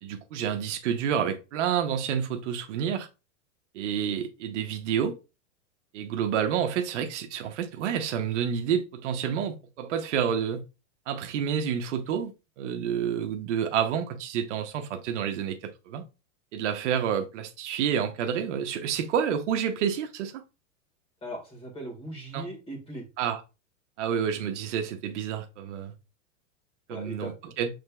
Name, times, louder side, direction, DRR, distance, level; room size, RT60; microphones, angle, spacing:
voice 1, 0.0-3.1 3.7-5.1 5.9-10.6 11.1-16.0 16.5-20.4 22.3-22.5 23.2-23.4 24.0-25.9 26.9-27.3 27.6-27.7, right 8 dB, 65° right, 0.8 m, -29 dB
voice 2, 21.2-23.0 26.9-27.5, right 1 dB, 15° left, 1.7 m, -39 dB
6.4 x 3.3 x 2.2 m
supercardioid pair, 155°, 38 cm